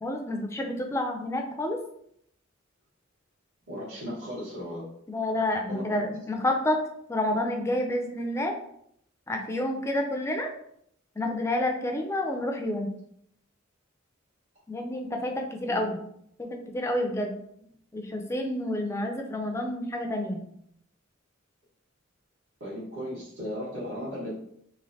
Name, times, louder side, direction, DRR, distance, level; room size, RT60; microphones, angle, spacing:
voice 1, 0.0-1.8 5.1-6.8 7.1-8.5 9.3-10.5 11.2-12.9 14.7-16.0 16.4-17.3 17.9-20.4, left 1 dB, 15° left, 3 dB, 0.3 m, -29 dB
voice 2, 3.7-4.8 5.7-6.1 15.6-15.8 22.6-24.3, equal, 80° right, -11 dB, 1.4 m, -36 dB
3.1 x 2.4 x 2.7 m, 0.70 s
head